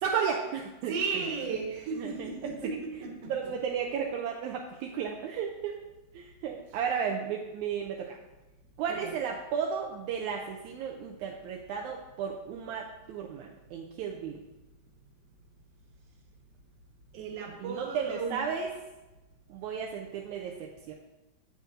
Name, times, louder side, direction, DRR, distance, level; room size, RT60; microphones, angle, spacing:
voice 1, 0.0-0.9 2.0-2.3 3.3-5.8 6.1-8.2 8.8-14.3 17.6-18.7 19.5-20.9, right 7 dB, 80° right, 0 dB, 1.9 m, -34 dB
voice 2, 0.9-3.3 8.9-9.1 17.1-18.4, right 5 dB, 55° right, 0 dB, 2.2 m, -35 dB
8.9 x 8.1 x 2.6 m, 1.1 s
omnidirectional pair, 3.7 m